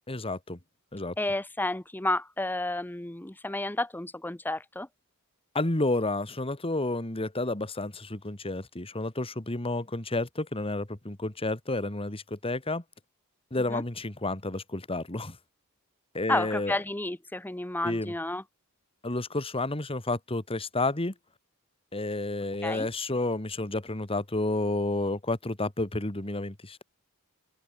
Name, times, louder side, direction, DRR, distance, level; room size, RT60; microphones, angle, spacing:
voice 1, 0.1-0.6 0.9-1.1 5.5-12.8 13.5-15.4 16.1-16.7 17.8-18.1 19.0-21.1 21.9-26.8, left 2 dB, 25° left, 2.0 m, -30 dB
voice 2, 1.2-4.9 13.7-13.8 16.3-18.4 22.6-22.9, left 2 dB, 10° left, 0.8 m, -31 dB
head